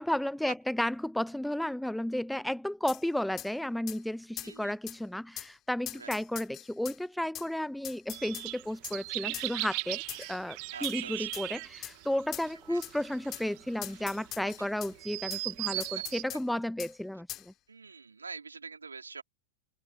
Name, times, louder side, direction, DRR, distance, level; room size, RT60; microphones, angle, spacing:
voice 1, 0.0-10.0 10.3-17.5, left 1 dB, ahead, 0.5 m, -33 dB
sound 1, 2.9-3.0 3.4-3.5 3.9-4.0 4.4-4.5 4.9-5.0 5.4-5.5 5.9-7.0 7.3-7.5 7.8-8.5 8.8-9.0 9.3-9.5 10.1-10.4 10.8-11.0 11.3-11.5 11.8-12.0 12.3-12.5 12.8-12.9 13.3-13.5 13.8-14.9 15.3-15.4 15.8-16.4 16.8-16.9 17.3-17.5, left 14 dB, 35° left, 4.4 m, -41 dB
voice 2, 4.4-4.8 5.9-6.1 10.7-11.4 12.7-12.8 17.7-19.2, right 4 dB, 75° right, 3.8 m, -45 dB
sound 2, 8.1-16.2, right 40 dB or more, 45° right, 1.9 m, -38 dB
figure-of-eight pair, 90°, 0 cm